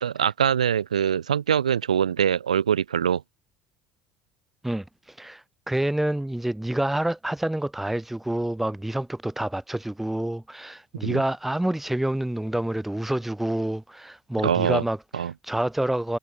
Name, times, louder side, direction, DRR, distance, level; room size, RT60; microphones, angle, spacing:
voice 1, 0.0-3.2 11.0-11.2 14.4-14.8 15.1-15.3, right 8 dB, 90° right, 0.3 m, -23 dB
voice 2, 5.2-15.0 15.5-16.2, right 1 dB, 5° right, 0.6 m, -27 dB
hypercardioid pair, 60°, 4 cm